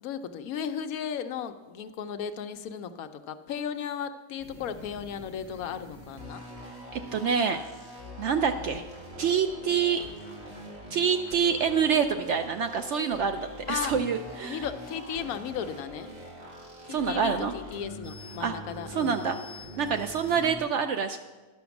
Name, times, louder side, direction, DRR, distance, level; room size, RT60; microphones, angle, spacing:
voice 1, 0.0-6.4 13.7-14.0 14.4-16.1 16.9-19.2, left 8 dB, 75° left, 9 dB, 1.0 m, -35 dB
sound 1, 4.4-20.6, equal, 30° right, 2.0 m, -43 dB
voice 2, 6.9-7.6 8.2-8.8 9.2-10.0 10.9-14.6 16.9-17.5 18.4-18.5 18.9-19.4 19.8-21.2, right 6 dB, 65° right, 7 dB, 0.7 m, -26 dB
11.5 x 6.0 x 7.0 m, 1.2 s
omnidirectional pair, 1.6 m